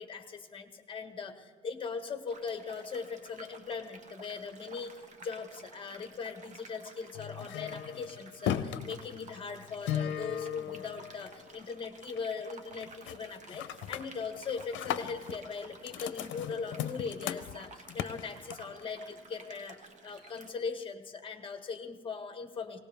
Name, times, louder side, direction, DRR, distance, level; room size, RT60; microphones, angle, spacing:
voice 1, 0.0-4.9 5.2-19.8 20.0-22.8, left 5 dB, 25° left, 7 dB, 1.4 m, -40 dB
sound 1, 2.3-20.5, right 3 dB, 40° right, 1.5 m, -53 dB
sound 2, 7.1-11.7 12.0-12.4 12.7-13.2 13.5-18.8, left 10 dB, 75° left, 0.7 m, -37 dB
19.5 x 18.5 x 3.5 m, 1.5 s
cardioid pair, 125°, 20 cm